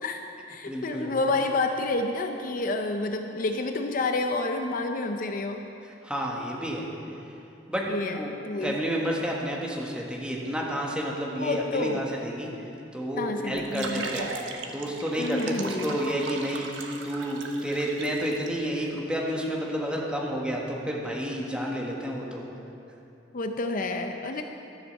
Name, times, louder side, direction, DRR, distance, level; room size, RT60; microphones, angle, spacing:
voice 1, 0.0-5.7 7.9-8.8 11.3-12.1 13.2-14.3 15.2-16.0 23.3-24.4, left 2 dB, 45° left, 5 dB, 0.5 m, -29 dB
voice 2, 0.7-1.2 6.0-6.8 7.7-12.5 12.9-14.3 14.7-22.4, equal, 5° right, -2 dB, 1.5 m, -30 dB
sound 1, 13.5-18.5, right 3 dB, 85° right, 1.0 m, -38 dB
13.0 x 7.4 x 6.5 m, 2.8 s
head